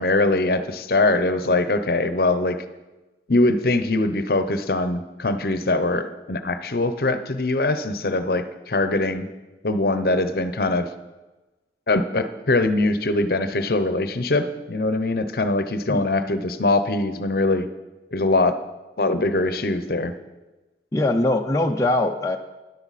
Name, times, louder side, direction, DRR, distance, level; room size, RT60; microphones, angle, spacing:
voice 1, 0.0-2.6 3.3-9.3 9.6-10.9 11.9-17.7 18.1-18.6 19.0-20.1, left 2 dB, 55° left, 10 dB, 0.7 m, -22 dB
voice 2, 20.9-22.4, left 2 dB, 15° left, 2 dB, 0.5 m, -21 dB
13.5 x 10.5 x 4.2 m, 1.1 s
head